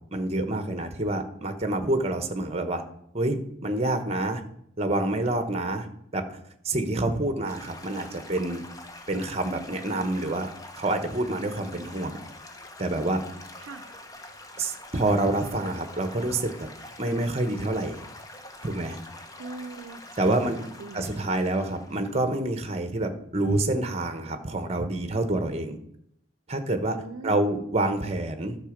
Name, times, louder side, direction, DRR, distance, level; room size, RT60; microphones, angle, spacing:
voice 1, 0.1-2.8 3.1-4.4 4.8-5.9 6.1-6.4 6.6-8.6 9.1-10.5 10.8-12.2 12.8-13.2 14.6-16.7 17.0-18.0 18.6-19.0 20.2-20.6 20.9-25.8 26.5-28.6, right 2 dB, 30° right, 8 dB, 1.0 m, -27 dB
Stream / Gurgling / Trickle dribble, 7.4-22.6, left 2 dB, 20° left, 0.9 m, -45 dB
voice 2, 19.4-21.1 26.9-27.6, right 3 dB, 90° right, 15 dB, 0.6 m, -40 dB
12.0 x 6.8 x 5.1 m, 0.73 s
head